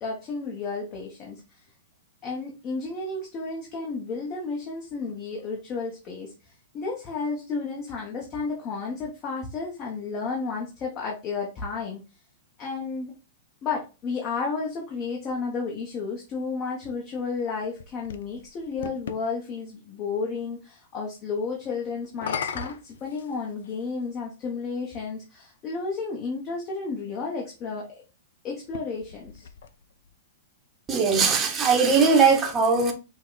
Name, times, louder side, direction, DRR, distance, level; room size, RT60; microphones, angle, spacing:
voice 1, 0.0-1.6 2.2-12.0 12.6-13.1 13.6-27.9 28.4-29.5, left 4 dB, 30° left, 1.1 m, -32 dB
sound 1, 17.4-19.2 22.0-23.8 24.8-24.9 28.6-30.1, left 7 dB, 75° left, 0.6 m, -37 dB
voice 2, 30.9-32.9, right 5 dB, 20° right, 1.0 m, -20 dB
5.8 x 2.3 x 3.8 m
hypercardioid pair, 145°, 0 cm